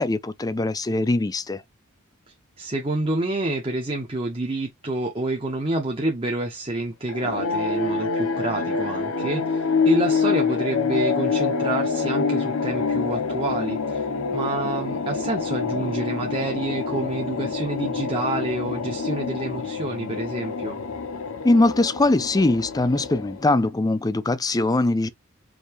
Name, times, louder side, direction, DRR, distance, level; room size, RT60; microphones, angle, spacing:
voice 1, 0.0-1.6 21.4-25.1, left 2 dB, 20° left, 0.4 m, -21 dB
voice 2, 2.6-14.1 14.3-20.8, right 2 dB, 25° right, 0.9 m, -28 dB
sound 1, 7.1-23.7, left 4 dB, 80° left, 0.8 m, -26 dB
5.3 x 2.8 x 3.1 m
head